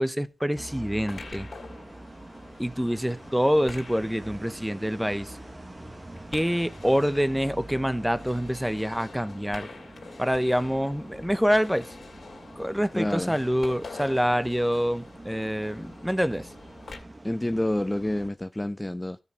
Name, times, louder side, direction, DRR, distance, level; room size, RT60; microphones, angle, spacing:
voice 1, 0.0-1.5 2.6-5.3 6.3-9.7 10.2-11.9 12.6-16.5, equal, 5° right, 0.9 m, -26 dB
sound 1, 0.5-18.3, right 1 dB, 30° right, 1.7 m, -45 dB
sound 2, 0.8-17.0, left 4 dB, 70° left, 2.7 m, -47 dB
voice 2, 12.9-13.4 17.2-19.2, left 1 dB, 15° left, 0.5 m, -28 dB
13.0 x 5.3 x 5.4 m
cardioid pair, 40°, 0 cm